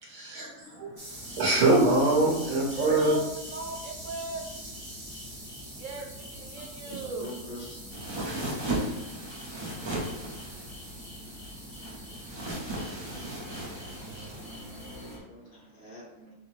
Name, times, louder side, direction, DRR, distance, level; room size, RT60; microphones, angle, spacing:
voice 1, 0.0-3.1 6.6-6.7 8.2-8.3 14.1-14.3, right 2 dB, 90° right, -6 dB, 1.9 m, -25 dB
sound 1, 1.0-15.2, right 1 dB, 20° right, 0.9 m, -46 dB
sound 2, 1.1-15.2, left 1 dB, 45° left, 1.4 m, -46 dB
voice 2, 2.7-3.2 3.5-4.4 5.8-7.3, right 4 dB, 65° right, 2 dB, 0.9 m, -36 dB
voice 3, 6.8-7.8 15.3-16.3, equal, 75° left, -4 dB, 1.8 m, -44 dB
sound 3, 7.9-14.6, right 1 dB, 35° right, 0.4 m, -36 dB
5.5 x 2.0 x 3.1 m, 0.90 s
omnidirectional pair, 1.5 m